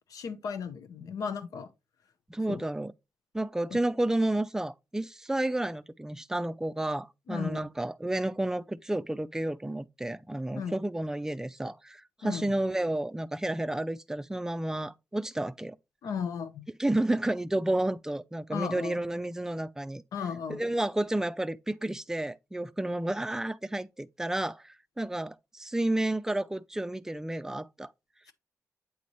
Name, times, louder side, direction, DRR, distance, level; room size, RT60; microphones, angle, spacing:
voice 1, 0.1-1.7 2.5-2.6 7.3-7.6 10.5-10.8 12.2-12.5 16.0-16.7 18.5-19.0 20.1-20.6, left 6 dB, 85° left, 0.8 m, -35 dB
voice 2, 2.3-2.9 3.3-15.8 16.8-20.0 20.5-27.9, right 1 dB, 10° right, 0.4 m, -31 dB
8.4 x 4.0 x 3.0 m
cardioid pair, 85°, 6 cm